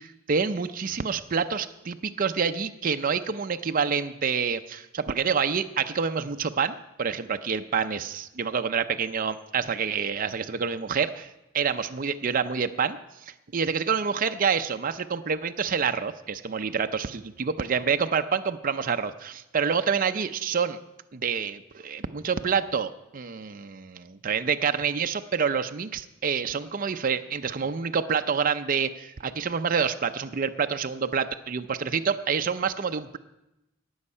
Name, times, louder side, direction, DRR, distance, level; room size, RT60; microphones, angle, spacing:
voice 1, 0.0-13.0 13.5-20.8 21.1-33.2, right 6 dB, 45° right, 8 dB, 0.5 m, -27 dB
18.5 x 7.2 x 5.5 m, 0.93 s
head